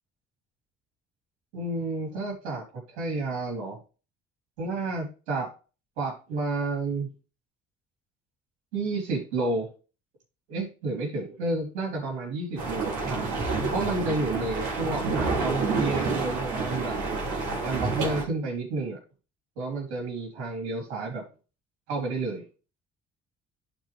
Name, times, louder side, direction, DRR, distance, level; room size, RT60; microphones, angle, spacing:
voice 1, 1.5-2.6 2.9-3.8 4.6-5.5 6.0-7.1 8.7-9.7 10.5-13.3 13.7-17.0 17.3-19.0 19.6-21.2 21.9-22.4, right 3 dB, 90° right, 0 dB, 3.9 m, -30 dB
sound 1, 12.6-18.2, right 3 dB, 65° right, 3.8 m, -29 dB
11.0 x 4.8 x 3.4 m, 0.33 s
hypercardioid pair, 55°, 33 cm